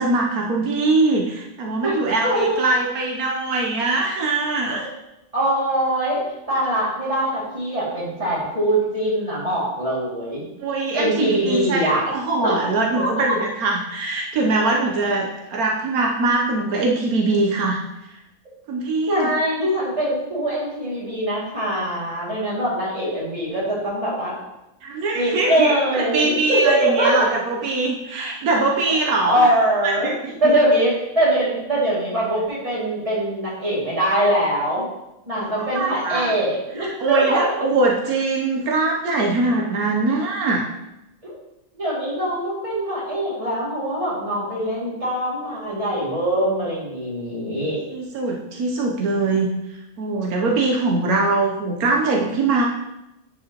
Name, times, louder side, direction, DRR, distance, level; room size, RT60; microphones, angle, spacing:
voice 1, 0.0-4.8 10.6-17.8 18.7-19.3 24.8-29.5 29.8-30.5 35.6-36.3 36.8-40.7 47.9-49.5 50.0-52.7, right 3 dB, 80° right, 0 dB, 1.3 m, -22 dB
voice 2, 2.2-2.6 4.7-4.9 5.3-6.2 6.5-10.5 10.9-12.0 12.4-12.5 13.0-13.1 19.1-24.4 25.2-27.2 28.9-29.0 29.3-30.1 30.4-34.9 35.3-37.4 41.2-41.3 41.7-47.8, right 1 dB, 25° right, -7 dB, 2.4 m, -22 dB
9.9 x 4.8 x 2.9 m, 0.90 s
omnidirectional pair, 1.5 m